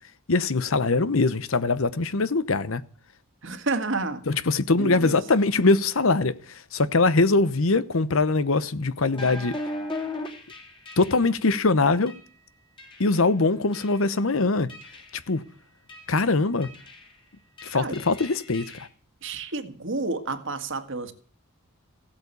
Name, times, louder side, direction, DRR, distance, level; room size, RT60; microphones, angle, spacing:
voice 1, 0.3-2.8 4.3-9.6 11.0-12.1 13.0-14.7 15.3-15.4 16.1-16.7 17.6-18.9, left 3 dB, 70° left, 0.9 m, -22 dB
voice 2, 3.4-4.2 4.8-5.2 17.7-18.0 19.2-21.1, right 3 dB, 60° right, 1.9 m, -30 dB
sound 1, 9.1-11.4 12.1-12.3 12.8-13.3 13.7-14.2 14.7-15.3 15.9-16.2 16.6-17.2 17.6-18.9, left 2 dB, 25° left, 3.3 m, -38 dB
16.5 x 8.7 x 8.3 m
head